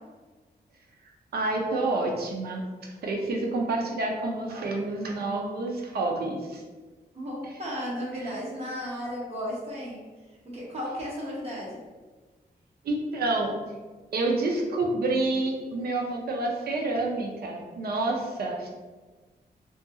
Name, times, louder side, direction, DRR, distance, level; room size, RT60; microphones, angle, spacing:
voice 1, 1.3-6.6 7.4-7.5 12.8-13.5 14.1-18.7, right 2 dB, 75° right, 0 dB, 0.5 m, -28 dB
voice 2, 7.1-10.0 10.5-11.8, equal, 40° right, -4 dB, 0.7 m, -34 dB
2.7 x 2.4 x 2.3 m, 1.3 s
wide cardioid pair, 165°, 16 cm